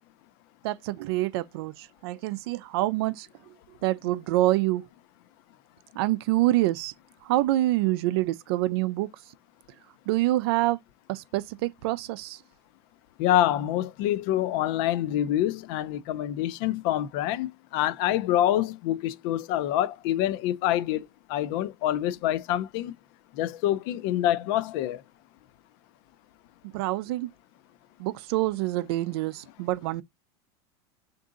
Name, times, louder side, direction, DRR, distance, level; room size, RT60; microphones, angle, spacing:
voice 1, 0.6-3.5 3.8-4.9 5.9-6.9 7.2-9.1 10.1-10.8 11.1-12.4 26.7-27.3 28.0-30.0, right 17 dB, 65° right, 0.4 m, -26 dB
voice 2, 13.2-22.9 23.4-25.0, left 12 dB, 55° left, 0.5 m, -26 dB
3.7 x 2.6 x 3.7 m
supercardioid pair, 140°, 14 cm